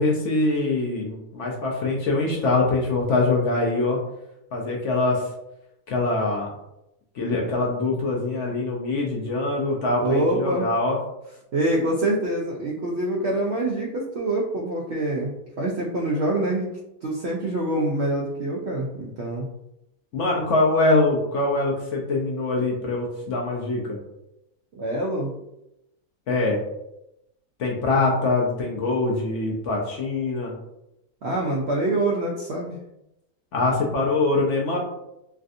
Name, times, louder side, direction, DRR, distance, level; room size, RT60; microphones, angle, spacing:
voice 1, 0.0-4.0 4.5-5.3 5.9-6.5 7.2-11.0 20.1-24.0 26.3-26.6 27.6-30.5 33.5-34.8, left 2 dB, 65° left, -1 dB, 0.8 m, -23 dB
voice 2, 10.0-10.7 11.5-15.3 15.6-16.7 17.0-19.5 24.7-25.3 31.2-32.8, right 1 dB, 70° right, -3 dB, 0.6 m, -25 dB
3.3 x 2.5 x 2.5 m, 0.86 s
omnidirectional pair, 1.6 m